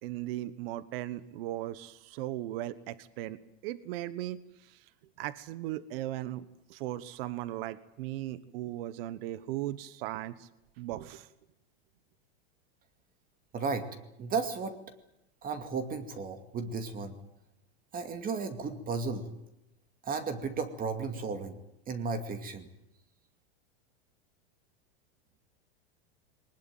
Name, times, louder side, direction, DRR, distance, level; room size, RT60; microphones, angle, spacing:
voice 1, 0.0-4.8 5.2-10.5 10.8-11.3, right 14 dB, 65° right, 16 dB, 1.3 m, -38 dB
voice 2, 13.5-13.9 14.2-14.7 15.4-17.1 17.9-19.3 20.0-21.6 21.9-22.7, right 4 dB, 25° right, 8 dB, 2.3 m, -34 dB
21.0 x 20.0 x 9.1 m, 0.85 s
supercardioid pair, 135°, 32 cm